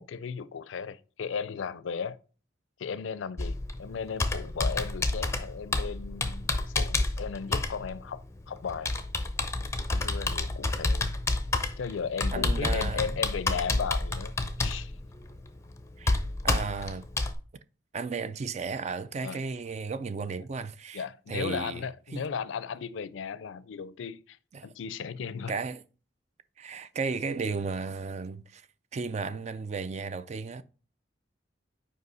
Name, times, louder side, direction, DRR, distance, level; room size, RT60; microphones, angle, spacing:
voice 1, 0.0-2.2 2.8-8.9 9.9-11.1 11.8-14.3 14.6-14.9 19.2-19.4 20.9-24.4 24.6-25.5, left 6 dB, 85° left, 0.4 m, -36 dB
Computer keyboard, 3.4-17.3, left 2 dB, 15° left, 0.5 m, -30 dB
voice 2, 12.3-13.1 16.0-17.0 17.9-21.9 22.1-22.2 24.5-24.7 25.5-25.8 26.6-28.7 28.9-30.6, right 4 dB, 35° right, 0.3 m, -34 dB
5.4 x 4.8 x 3.9 m
head